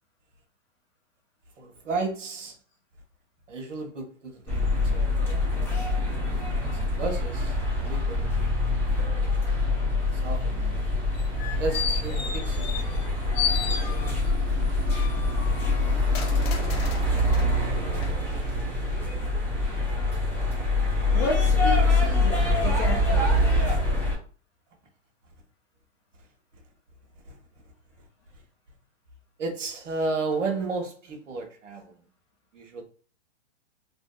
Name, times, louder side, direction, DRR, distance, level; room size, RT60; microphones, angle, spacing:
voice 1, 1.6-2.6 3.5-5.2 6.3-8.5 10.0-10.8 11.4-12.9 13.4-14.2 16.8-16.9 27.2-27.6 29.4-31.9 32.5-32.8, right 3 dB, 90° right, 0.9 m, -34 dB
sound 1, 4.5-24.2, left 2 dB, 5° left, 0.7 m, -25 dB
sound 2, 11.2-13.1 13.3-14.4 14.9-17.5 18.0-18.1, left 8 dB, 55° left, 0.7 m, -33 dB
voice 2, 21.1-23.4, left 3 dB, 25° left, 0.4 m, -32 dB
2.7 x 2.6 x 2.2 m
hypercardioid pair, 135°, 36 cm